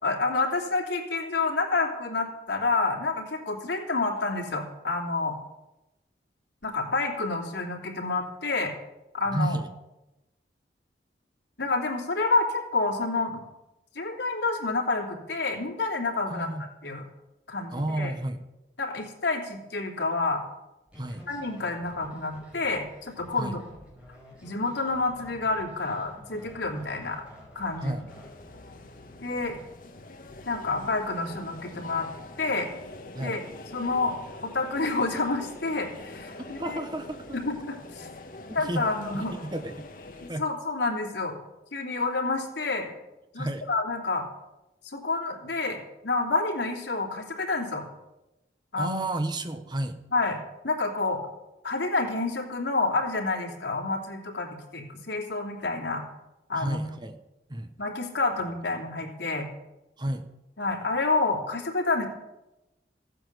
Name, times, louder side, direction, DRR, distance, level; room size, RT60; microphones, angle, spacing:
voice 1, 0.0-5.3 6.6-8.7 9.1-9.6 11.6-13.4 13.9-16.5 16.8-17.1 17.5-18.1 18.8-20.4 21.3-23.6 24.4-27.2 27.5-28.0 29.2-29.6 30.4-32.1 32.4-32.7 33.2-33.4 33.7-34.2 34.4-36.8 37.3-38.1 38.5-39.3 40.2-41.4 41.7-42.9 43.3-44.2 44.8-47.9 48.7-49.0 50.1-50.4 50.6-51.2 51.6-56.0 56.5-56.8 57.8-59.5 60.6-62.1, left 3 dB, 85° left, 1 dB, 3.2 m, -28 dB
voice 2, 9.3-9.7 16.3-16.7 17.7-18.4 20.9-21.3 23.4-23.6 27.8-28.1 33.1-33.4 36.4-37.4 38.5-38.9 39.1-39.9 40.3-40.5 43.3-43.6 48.8-50.0 56.6-57.2 57.5-57.7 59.0-59.1 60.0-60.3, right 1 dB, 25° right, 8 dB, 1.0 m, -32 dB
sound 1, 20.9-29.6, left 1 dB, 5° right, 4.6 m, -50 dB
sound 2, 28.1-40.3, left 2 dB, 50° left, 1.4 m, -45 dB
15.5 x 9.2 x 8.0 m, 0.98 s
head